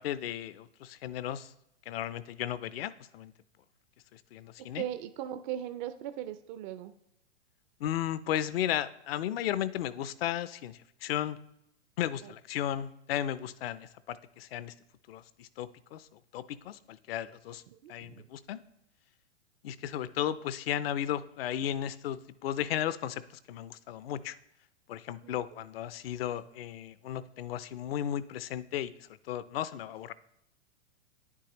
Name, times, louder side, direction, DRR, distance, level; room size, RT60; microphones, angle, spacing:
voice 1, 0.0-1.5 1.9-3.3 4.1-4.8 7.8-11.4 12.0-14.7 15.1-16.1 16.3-17.6 17.9-18.6 19.6-23.2 23.5-24.4 24.9-28.9 29.3-30.1, left 11 dB, 55° left, 16 dB, 0.6 m, -35 dB
voice 2, 4.6-6.9 12.2-12.3 17.7-18.3 25.2-25.6, right 11 dB, 40° right, 10 dB, 0.5 m, -39 dB
10.0 x 8.3 x 3.0 m, 0.81 s
hypercardioid pair, 110°, 35 cm